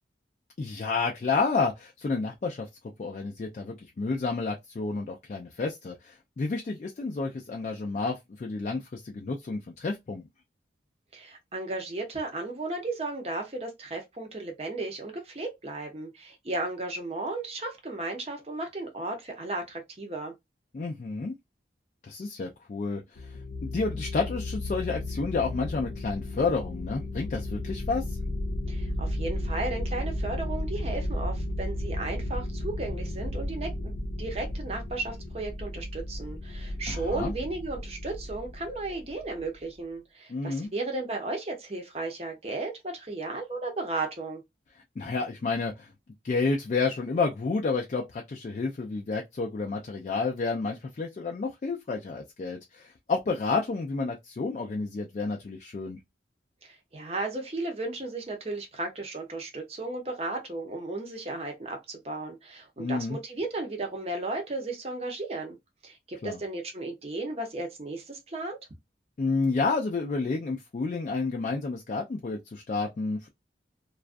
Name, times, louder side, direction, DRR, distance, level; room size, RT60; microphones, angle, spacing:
voice 1, 0.6-2.7 3.0-10.2 20.7-21.3 22.0-28.2 36.9-37.3 40.3-40.7 45.0-45.9 46.2-56.0 62.8-63.2 66.2-66.4 69.2-73.3, left 4 dB, 40° left, 0.3 m, -30 dB
voice 2, 11.1-20.3 28.7-33.9 34.2-44.4 56.6-65.6 65.8-68.6, right 2 dB, 35° right, 0.7 m, -35 dB
sound 1, 23.2-39.4, left 1 dB, 80° left, 0.6 m, -34 dB
2.3 x 2.2 x 2.4 m
head